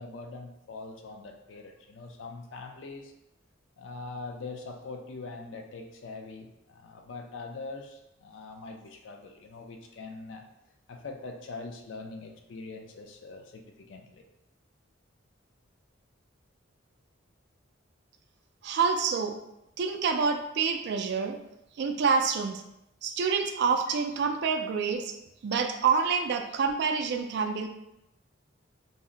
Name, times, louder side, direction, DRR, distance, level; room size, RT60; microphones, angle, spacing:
voice 1, 0.0-3.1 3.8-10.4 10.9-14.2, left 3 dB, 65° left, 4 dB, 0.4 m, -42 dB
voice 2, 18.6-19.4 19.8-21.4 21.8-22.6 23.0-25.1 25.4-27.7, right 5 dB, 55° right, 6 dB, 0.3 m, -27 dB
2.6 x 2.1 x 3.7 m, 0.86 s
head